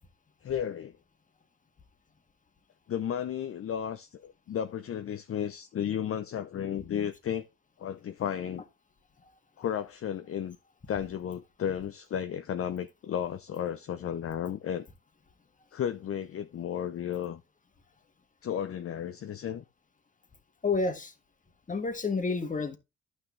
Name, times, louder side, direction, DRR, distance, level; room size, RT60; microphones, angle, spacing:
voice 1, 0.4-1.0 2.9-7.5 7.8-8.6 9.6-10.6 10.9-14.9 15.7-17.4 18.4-19.6, left 9 dB, 50° left, 0.7 m, -33 dB
voice 2, 20.6-21.1 21.7-22.8, left 4 dB, 25° left, 1.6 m, -29 dB
11.0 x 6.1 x 3.2 m
cardioid pair, 90°, 30 cm